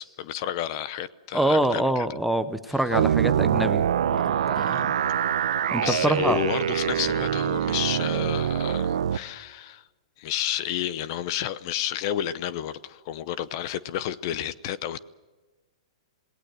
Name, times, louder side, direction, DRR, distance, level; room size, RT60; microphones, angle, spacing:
voice 1, 0.0-2.1 2.7-2.8 4.6-4.8 5.8-9.9 10.2-15.0, left 11 dB, 40° left, 16 dB, 0.8 m, -31 dB
voice 2, 1.3-3.8 4.2-4.9 5.7-6.4, right 1 dB, ahead, 9 dB, 0.7 m, -25 dB
sound 1, 2.9-9.2, right 9 dB, 75° right, 0.8 m, -24 dB
26.5 x 19.5 x 7.7 m, 1.2 s
hypercardioid pair, 155°, 4 cm